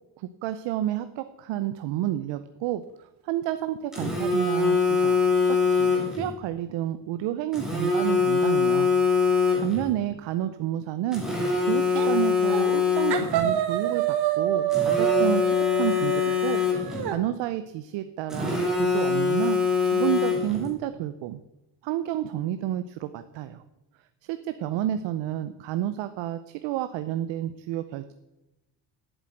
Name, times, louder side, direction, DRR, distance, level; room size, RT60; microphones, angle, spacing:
voice 1, 0.2-2.8 3.2-8.9 9.6-11.2 11.7-15.4 15.8-16.6 17.0-19.6 19.9-21.4 21.8-23.6 24.3-28.1, right 12 dB, 90° right, 11 dB, 0.7 m, -30 dB
Telephone, 3.9-6.3 7.5-9.9 11.1-13.5 14.7-17.1 18.3-20.7, left 5 dB, ahead, 2.6 m, -24 dB
sound 1, 12.0-12.2 12.5-12.8 13.1-17.2, right 10 dB, 65° right, 1.3 m, -27 dB
8.0 x 7.8 x 8.8 m, 0.98 s
cardioid pair, 180°, 43 cm